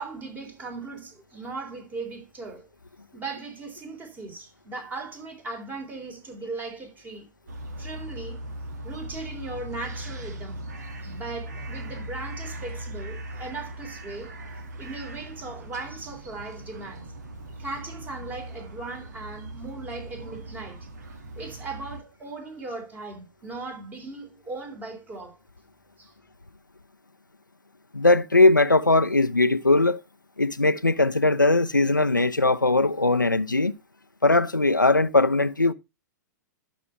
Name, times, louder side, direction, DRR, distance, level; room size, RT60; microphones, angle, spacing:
voice 1, 0.0-2.7 3.1-7.3 7.8-8.4 8.8-10.6 11.0-14.3 14.8-17.1 17.6-20.8 21.4-25.4 26.0-26.1, right 3 dB, 15° right, 3.4 m, -38 dB
sound 1, 7.5-22.0, right 1 dB, 60° right, 2.3 m, -39 dB
voice 2, 27.9-30.0 30.4-33.7 34.2-35.7, left 2 dB, 85° left, 0.8 m, -20 dB
11.5 x 6.1 x 4.5 m
figure-of-eight pair, 105°, 10 cm